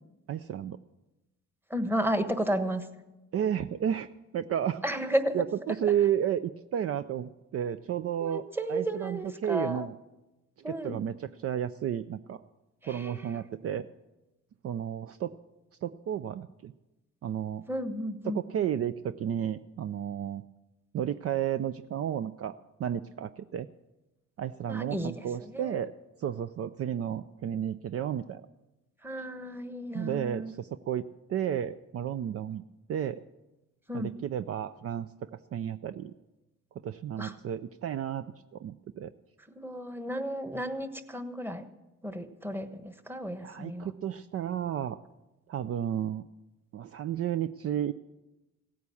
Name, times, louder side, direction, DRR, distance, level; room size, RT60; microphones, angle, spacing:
voice 1, 0.3-0.8 3.3-4.1 4.3-4.8 5.3-8.4 8.7-9.9 10.6-12.4 12.9-13.9 14.6-15.3 15.8-16.7 17.2-17.6 18.3-20.4 20.9-23.7 24.4-25.9 26.2-28.4 29.9-31.0 31.3-32.6 32.9-33.2 33.9-36.1 36.8-38.3 38.5-39.1 43.4-45.0 45.5-46.3 46.7-47.9, right 9 dB, 50° right, 12 dB, 0.5 m, -32 dB
voice 2, 1.7-2.9 4.8-5.4 8.2-9.9 10.6-11.0 12.8-13.3 17.7-18.4 24.7-25.1 25.4-25.8 29.0-30.5 33.9-34.1 37.2-37.3 39.5-41.6 42.0-43.9, equal, 5° right, 9 dB, 1.2 m, -33 dB
16.5 x 9.3 x 7.1 m, 1.0 s
cardioid pair, 90°, 30 cm